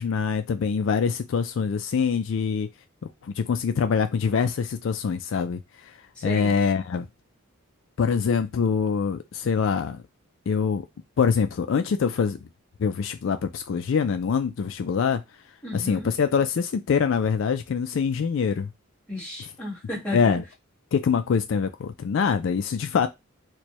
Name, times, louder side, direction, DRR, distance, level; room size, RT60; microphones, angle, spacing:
voice 1, 0.0-2.7 3.2-6.0 6.2-7.1 8.0-10.0 10.5-10.9 11.2-12.4 12.8-15.2 15.7-18.7 20.1-20.4 20.9-23.1, left 6 dB, 65° left, 0.3 m, -24 dB
voice 2, 6.2-6.5 15.6-16.1 19.1-20.4, left 1 dB, 5° left, 1.6 m, -33 dB
4.3 x 2.2 x 3.0 m
head